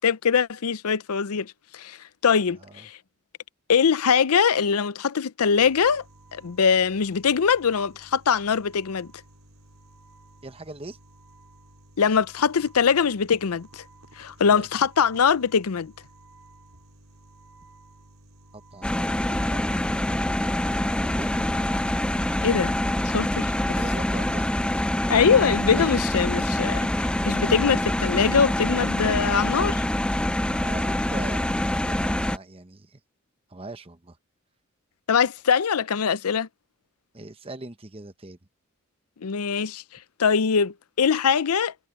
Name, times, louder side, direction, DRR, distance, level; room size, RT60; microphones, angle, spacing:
voice 1, 0.0-2.0 2.2-3.0 3.7-6.0 6.3-9.1 12.0-13.8 14.2-15.9 22.4-22.7 23.0-23.5 25.1-29.8 35.1-36.5 39.2-39.8 40.2-41.9, left 6 dB, 80° left, 0.6 m, -22 dB
sound 1, 5.6-25.0, right 2 dB, 65° right, 3.9 m, -52 dB
voice 2, 10.4-11.0 14.4-14.7 18.5-19.6 21.1-21.6 23.7-24.5 25.8-26.0 30.5-33.0 33.5-34.2 37.1-38.4, right 2 dB, 25° right, 0.9 m, -40 dB
sound 2, 18.8-32.4, left 1 dB, 5° left, 0.4 m, -25 dB
head